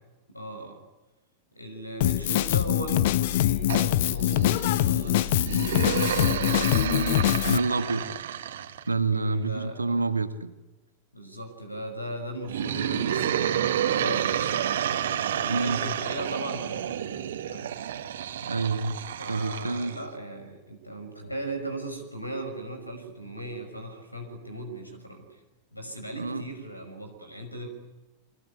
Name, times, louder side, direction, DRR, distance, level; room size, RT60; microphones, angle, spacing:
voice 1, 0.3-0.8 1.5-5.8 9.1-10.1 11.1-14.7 15.3-17.2 17.5-17.7 19.2-25.4 25.7-27.7, right 1 dB, 85° left, 8 dB, 6.2 m, -38 dB
Drum kit, 2.0-7.6, left 14 dB, 50° left, 0.9 m, -24 dB
sound 1, 3.7-8.9 12.4-20.0, right 10 dB, 60° right, 2.0 m, -30 dB
voice 2, 6.8-8.1 8.9-10.5 15.5-15.8 18.5-19.0 19.3-20.0 26.1-26.4, right 3 dB, 80° right, 10 dB, 1.8 m, -28 dB
29.5 x 24.0 x 8.4 m, 1.1 s
figure-of-eight pair, 90°, 0 cm